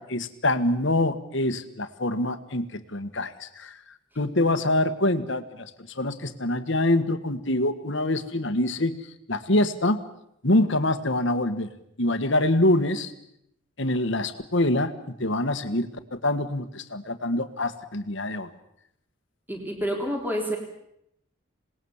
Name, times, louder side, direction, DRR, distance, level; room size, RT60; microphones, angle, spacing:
voice 1, 0.0-3.8 4.2-5.7 5.9-8.9 9.3-10.0 10.4-11.7 12.0-13.1 13.8-18.5, left 1 dB, 60° left, 10 dB, 1.6 m, -25 dB
voice 2, 19.5-20.6, equal, 10° right, 2 dB, 3.7 m, -28 dB
27.0 x 20.0 x 7.3 m, 0.76 s
head